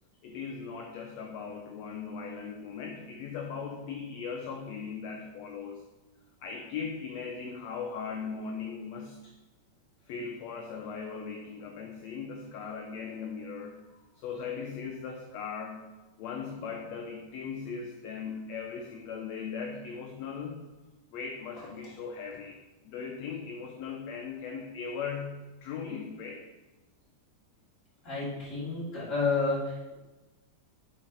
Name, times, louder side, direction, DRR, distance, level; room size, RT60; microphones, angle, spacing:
voice 1, 0.2-5.9 6.4-9.3 10.1-20.7 21.1-26.5, left 6 dB, 75° left, 1 dB, 1.7 m, -39 dB
voice 2, 28.0-29.9, left 3 dB, 25° left, -8 dB, 2.5 m, -30 dB
7.4 x 4.2 x 5.0 m, 1.1 s
omnidirectional pair, 3.5 m